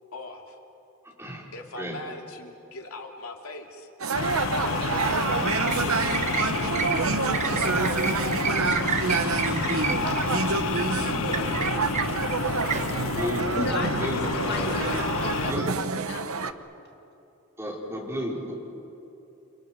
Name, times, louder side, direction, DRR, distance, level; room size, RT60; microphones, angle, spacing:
voice 1, 0.1-0.6 1.5-4.2 4.6-5.2 5.6-10.2 10.9-13.1 14.3-15.6, left 2 dB, 85° left, 2 dB, 2.7 m, -41 dB
voice 2, 1.0-1.5 1.8-2.0 13.1-13.5 13.9-14.8 15.5-15.7 17.6-18.5, equal, 10° right, -3 dB, 5.1 m, -33 dB
sound 1, 4.0-16.5, right 4 dB, 80° right, 0.9 m, -28 dB
sound 2, 4.1-15.5, left 4 dB, 70° left, 0.8 m, -29 dB
sound 3, 4.9-14.2, right 4 dB, 35° right, 1.1 m, -32 dB
voice 3, 13.6-14.1 14.5-14.7 15.2-16.6, left 2 dB, 50° left, 1 dB, 2.1 m, -35 dB
29.5 x 27.0 x 6.5 m, 2.9 s
head